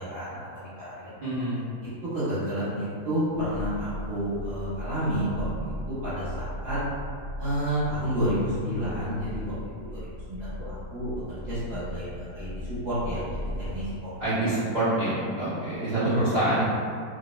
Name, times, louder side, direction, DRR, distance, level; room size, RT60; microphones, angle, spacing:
voice 1, 0.0-1.1 1.8-5.7 6.0-6.8 7.4-9.5 9.8-13.2 13.6-13.9 14.4-14.5 16.0-16.2 16.5-16.6, equal, 45° right, -13 dB, 1.0 m, -30 dB
voice 2, 1.2-1.6 14.2-16.6, right 1 dB, 75° right, -12 dB, 0.4 m, -26 dB
sound 1, 3.3-13.9 14.4-14.5, equal, 30° left, 0.7 m, -37 dB
2.5 x 2.1 x 3.0 m, 2.3 s
omnidirectional pair, 1.7 m